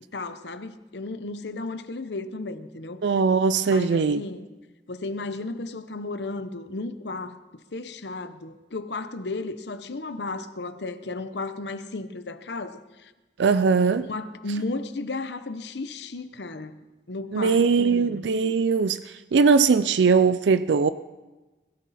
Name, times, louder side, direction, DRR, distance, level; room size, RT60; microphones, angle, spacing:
voice 1, 0.1-3.1 3.7-4.5 4.9-7.4 7.7-13.1 14.0-16.8 17.1-18.2, left 2 dB, 80° left, 0.9 m, -34 dB
voice 2, 3.0-4.2 13.4-14.1 17.3-19.0 19.3-20.9, right 5 dB, 90° right, 0.4 m, -20 dB
22.0 x 13.0 x 4.2 m
head